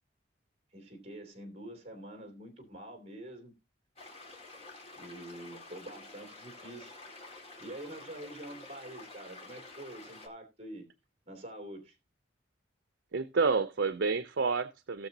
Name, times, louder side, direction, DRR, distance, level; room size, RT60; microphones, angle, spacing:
voice 1, 0.7-3.5 5.0-7.0 7.6-10.9 11.3-12.0, right 1 dB, 30° right, 2.8 m, -46 dB
sound 1, 4.0-10.3, left 2 dB, 35° left, 2.0 m, -50 dB
voice 2, 13.1-15.1, right 4 dB, 70° right, 0.6 m, -29 dB
17.5 x 6.6 x 2.7 m
head